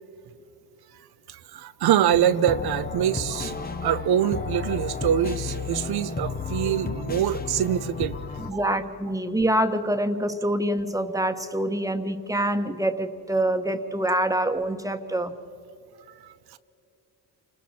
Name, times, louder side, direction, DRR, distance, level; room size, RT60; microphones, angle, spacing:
voice 1, 1.3-8.2 8.5-8.8 16.2-16.3, right 10 dB, 65° right, 14 dB, 0.9 m, -24 dB
sound 1, 2.1-8.5, left 5 dB, 20° left, 1.1 m, -32 dB
voice 2, 8.4-15.3, right 1 dB, 10° right, 7 dB, 1.5 m, -25 dB
29.0 x 20.5 x 4.4 m, 2.6 s
cardioid pair, 75°, 41 cm